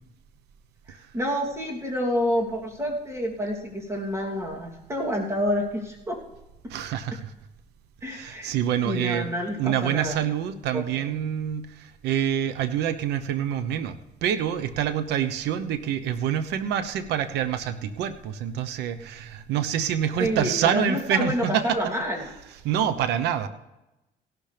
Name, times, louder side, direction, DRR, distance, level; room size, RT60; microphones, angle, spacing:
voice 1, 0.9-6.2 8.0-8.5 8.8-10.2 10.7-11.1 20.2-22.3, equal, 15° right, -1 dB, 3.0 m, -28 dB
voice 2, 6.7-7.3 8.1-9.3 9.6-21.8 22.6-23.5, right 9 dB, 80° right, 11 dB, 0.9 m, -26 dB
16.5 x 12.0 x 3.4 m, 0.99 s
cardioid pair, 110°, 17 cm